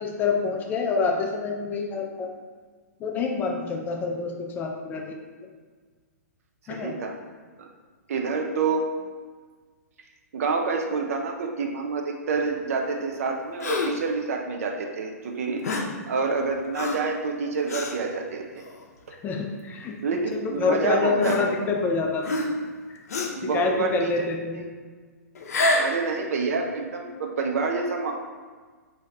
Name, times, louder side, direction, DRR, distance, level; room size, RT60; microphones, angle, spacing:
voice 1, 0.0-2.3 3.0-5.2 6.7-7.0 19.2-20.0 20.3-22.3 23.5-24.6, left 4 dB, 20° left, 1 dB, 0.4 m, -27 dB
voice 2, 6.7-7.1 7.6-7.7 8.1-8.9 10.3-15.6 16.1-18.6 19.1-19.2 20.0-21.4 23.3-24.1 24.5-24.6 25.8-28.1, right 4 dB, 60° right, 2 dB, 0.5 m, -27 dB
Gasp, 13.6-14.1 15.6-16.0 16.7-17.1 17.7-18.0 18.7-18.8 19.9-20.0 21.2-21.9 22.2-22.7 23.1-23.5 25.4-26.0, left 2 dB, 65° left, 0.6 m, -27 dB
3.1 x 2.8 x 3.6 m, 1.5 s
figure-of-eight pair, 120°, 9 cm